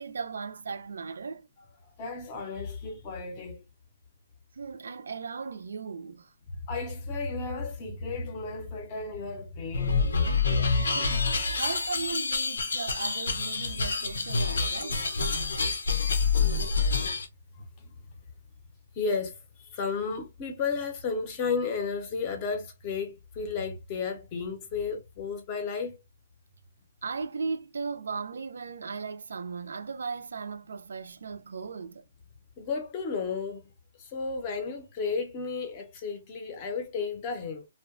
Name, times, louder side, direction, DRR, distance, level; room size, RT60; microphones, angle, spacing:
voice 1, 0.0-1.5 4.5-6.3 10.8-15.0 27.0-32.0, right 5 dB, 75° right, 0.4 m, -37 dB
voice 2, 2.0-3.6 6.5-10.2 14.8-15.1 17.5-18.0 18.9-26.0 32.6-33.7 34.0-37.7, left 4 dB, 20° left, 0.5 m, -33 dB
sound 1, 9.7-17.3, left 4 dB, 85° left, 0.6 m, -27 dB
2.7 x 2.1 x 2.4 m
hypercardioid pair, 180°, 0 cm